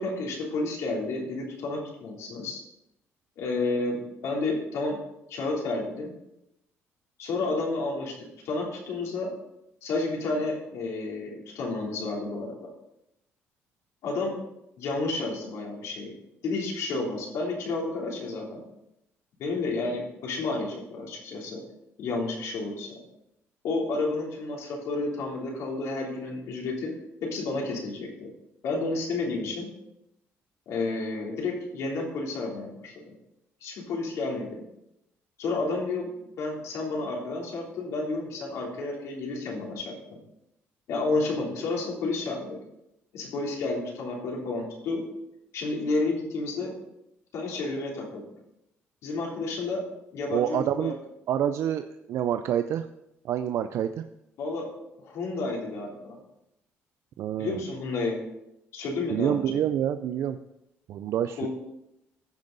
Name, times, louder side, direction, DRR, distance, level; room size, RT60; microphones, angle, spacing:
voice 1, 0.0-2.6 3.4-5.0 5.3-6.1 7.2-8.1 8.4-9.3 9.8-12.7 14.0-14.4 14.8-16.1 16.4-18.6 19.4-21.6 22.0-23.0 23.6-26.9 27.2-28.3 28.6-29.7 30.7-32.9 33.6-34.6 35.4-36.1 36.4-40.2 40.9-42.6 43.1-45.0 45.5-46.7 47.3-48.2 49.0-49.8 50.1-50.9 54.4-54.7 55.0-56.2 57.4-58.2 58.7-59.6 61.4-61.5, left 3 dB, 75° left, -2 dB, 3.3 m, -31 dB
voice 2, 50.3-50.9 51.3-52.9 53.2-54.0 57.2-57.6 59.1-60.4 60.9-61.5, right 10 dB, 65° right, 9 dB, 0.4 m, -27 dB
15.5 x 5.4 x 4.0 m, 0.85 s
cardioid pair, 125°, 5 cm